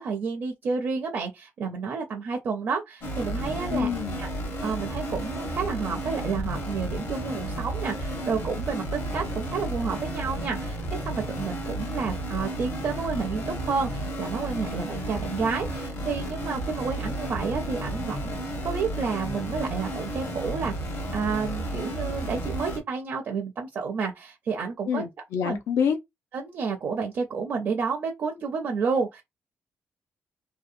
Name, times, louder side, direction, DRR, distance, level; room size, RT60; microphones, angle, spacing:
voice 1, 0.0-3.9 4.2-4.3 4.6-20.7 21.1-25.0 25.4-25.6 26.3-29.2, right 5 dB, 45° right, 0.4 m, -30 dB
sound 1, 3.0-22.8, right 1 dB, 50° left, 0.8 m, -32 dB
voice 2, 3.7-4.2 24.9-26.0, left 7 dB, 70° left, 0.4 m, -27 dB
2.7 x 2.1 x 2.4 m
cardioid pair, 175°, 5 cm